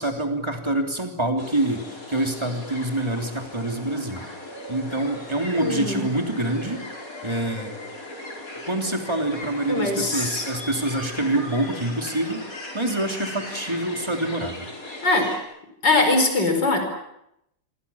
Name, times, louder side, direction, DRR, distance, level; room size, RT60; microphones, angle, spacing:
voice 1, 0.0-4.3 4.7-6.8 7.2-7.7 8.7-12.4 12.7-14.7, right 1 dB, 15° right, 3 dB, 3.4 m, -26 dB
sound 1, 1.4-15.4, left 1 dB, 50° left, 5.5 m, -38 dB
voice 2, 5.6-6.1 9.7-10.5 15.0-15.3 15.8-16.8, left 2 dB, 80° left, 5 dB, 5.6 m, -21 dB
27.5 x 23.5 x 7.3 m, 0.81 s
omnidirectional pair, 1.9 m